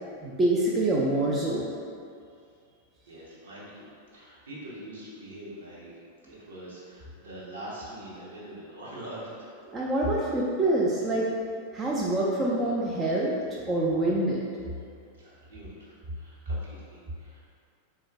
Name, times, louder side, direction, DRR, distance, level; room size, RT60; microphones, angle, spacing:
voice 1, 0.2-1.7 9.7-11.3 11.7-14.4, right 1 dB, 20° right, -5 dB, 0.4 m, -26 dB
voice 2, 3.1-5.9 6.2-9.5 15.2-17.4, right 1 dB, 70° right, -7 dB, 0.9 m, -44 dB
3.8 x 2.2 x 3.2 m, 2.3 s
figure-of-eight pair, 90°, 0 cm